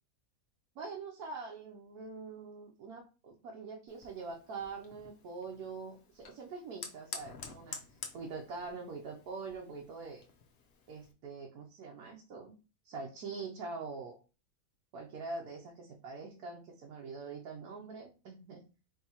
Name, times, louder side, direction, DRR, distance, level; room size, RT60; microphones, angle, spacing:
voice 1, 0.7-10.2 10.9-12.5 12.8-14.2 14.9-18.6, right 4 dB, 85° right, -1 dB, 1.3 m, -44 dB
Fire, 3.9-11.1, left 5 dB, 50° left, 0.8 m, -50 dB
4.6 x 3.4 x 2.8 m, 0.33 s
omnidirectional pair, 1.6 m